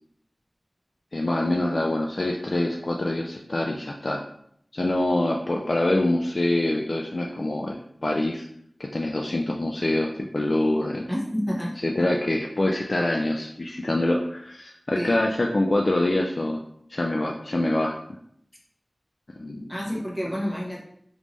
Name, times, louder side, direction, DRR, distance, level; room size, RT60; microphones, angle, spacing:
voice 1, 1.1-4.2 4.7-8.5 8.8-11.0 11.8-16.6 16.9-17.9 19.4-19.7, left 1 dB, 60° left, 1 dB, 0.3 m, -25 dB
voice 2, 11.1-11.7 14.9-15.2 19.7-20.8, equal, 20° left, -3 dB, 1.0 m, -29 dB
3.5 x 3.1 x 2.5 m, 0.68 s
wide cardioid pair, 40°, 0 cm